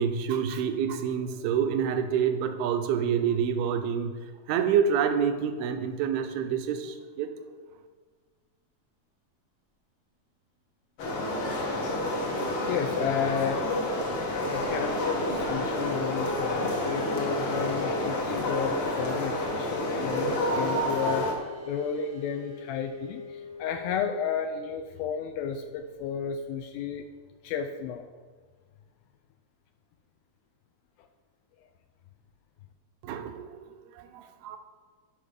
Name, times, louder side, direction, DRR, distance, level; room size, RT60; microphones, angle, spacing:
voice 1, 0.0-4.1 4.5-7.3 33.0-34.6, right 7 dB, 80° right, 8 dB, 2.4 m, -27 dB
sound 1, 11.0-21.3, left 1 dB, 60° left, 1.5 m, -29 dB
voice 2, 12.7-13.7 14.5-21.3 21.7-27.1 27.4-28.1 31.0-31.1, left 7 dB, 80° left, 5 dB, 2.2 m, -32 dB
sound 2, 14.3-26.7, left 4 dB, 30° right, 0.5 m, -46 dB
11.0 x 5.8 x 5.0 m, 1.5 s
omnidirectional pair, 4.6 m